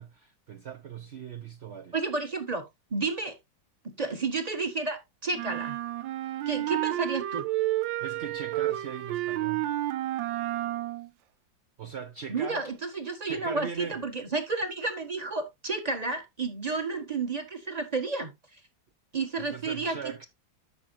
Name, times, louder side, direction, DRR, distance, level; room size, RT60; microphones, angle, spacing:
voice 1, 0.0-2.0 8.0-9.7 11.8-12.6 13.3-14.0 19.4-20.3, right 7 dB, 55° right, 0.7 m, -40 dB
voice 2, 1.9-3.3 3.8-5.8 6.5-7.5 12.3-18.3 19.1-20.0, right 3 dB, 25° right, 1.3 m, -31 dB
sound 1, 5.3-11.1, right 15 dB, 80° right, 1.4 m, -31 dB
12.5 x 6.1 x 2.6 m
omnidirectional pair, 2.1 m